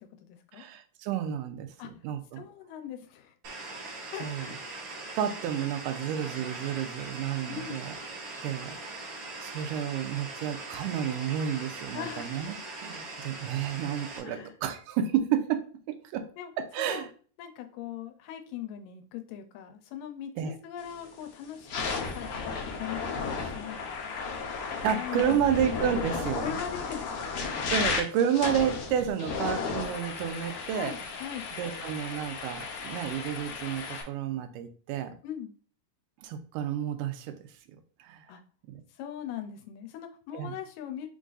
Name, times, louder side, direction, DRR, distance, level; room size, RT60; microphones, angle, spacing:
voice 1, 0.0-0.6 1.8-1.9 2.4-3.3 4.1-4.6 7.5-7.8 11.9-12.4 14.2-14.5 16.4-16.5 16.8-17.1 17.4-21.9 22.1-24.1 24.9-25.7 26.4-27.3 30.7-31.5 35.2-35.5 38.3-38.4 39.0-41.1, left 10 dB, 90° left, 7 dB, 2.3 m, -40 dB
voice 2, 0.5-2.4 4.2-4.5 5.2-8.0 8.4-8.8 9.4-12.6 12.8-16.2 16.6-17.1 20.4-20.6 24.8-26.5 27.7-30.9 31.6-35.1 36.2-37.4 38.0-38.2 38.7-38.8 40.3-40.5, right 9 dB, 85° right, 7 dB, 2.2 m, -31 dB
sound 1, 3.4-14.2, right 2 dB, 55° right, 1.4 m, -41 dB
sound 2, 20.8-21.1 21.5-34.0, left 5 dB, 75° left, 1.3 m, -34 dB
5.4 x 2.5 x 3.9 m, 0.40 s
omnidirectional pair, 3.7 m